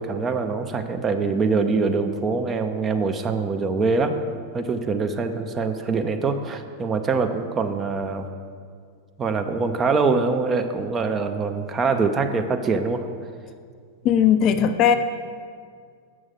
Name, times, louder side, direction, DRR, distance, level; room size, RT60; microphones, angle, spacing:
voice 1, 0.0-4.2 4.5-8.3 9.2-13.1, right 4 dB, 20° right, 7 dB, 0.6 m, -24 dB
voice 2, 14.0-15.0, left 8 dB, 35° left, 9 dB, 0.4 m, -18 dB
7.1 x 6.3 x 5.9 m, 2.1 s
figure-of-eight pair, 90°, 0 cm